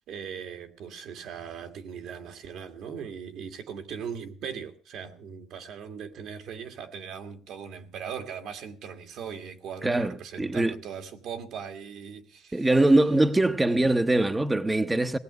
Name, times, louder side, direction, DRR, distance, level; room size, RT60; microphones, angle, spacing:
voice 1, 0.1-12.8, right 7 dB, 75° right, 1.9 m, -39 dB
voice 2, 10.4-10.7 12.5-15.2, right 2 dB, 10° right, 0.8 m, -22 dB
18.0 x 8.6 x 8.0 m
cardioid pair, 135°, 0 cm